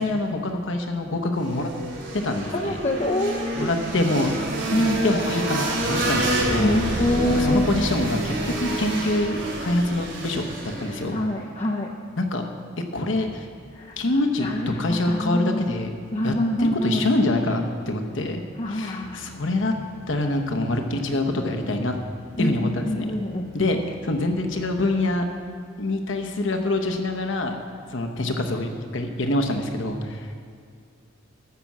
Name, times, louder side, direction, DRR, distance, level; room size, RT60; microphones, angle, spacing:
voice 1, 0.0-1.7 2.1-2.8 3.6-4.3 5.0-6.8 7.3-11.2 12.2-12.5 12.9-13.5 14.0-14.5 14.8-15.9 16.2-16.3 16.6-18.4 18.7-19.7 20.1-21.9 22.4-23.1 23.5-25.2 25.8-27.6 27.9-30.3, left 2 dB, 75° left, 4 dB, 1.1 m, -25 dB
sound 1, 1.3-11.2, right 1 dB, 60° right, 2.8 m, -28 dB
voice 2, 2.5-3.7 4.7-5.1 6.6-7.7 11.1-11.9 13.7-14.0 14.4-15.7 16.1-17.1 18.6-19.4 22.4-23.7, left 1 dB, 30° left, 0 dB, 0.6 m, -25 dB
sound 2, 5.6-10.5, right 2 dB, 25° right, 0.4 m, -33 dB
sound 3, 18.8-24.8, left 1 dB, 85° right, 3.6 m, -48 dB
12.5 x 6.1 x 7.5 m, 2.2 s
head